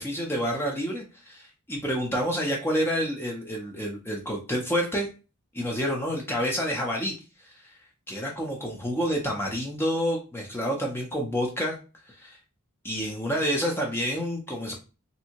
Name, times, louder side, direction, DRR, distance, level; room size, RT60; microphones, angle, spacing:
voice 1, 0.0-5.1 5.5-7.1 7.4-7.7 8.1-11.8 12.1-12.4 12.8-14.7, equal, 10° left, 0 dB, 0.5 m, -28 dB
3.2 x 2.6 x 2.8 m, 0.33 s
head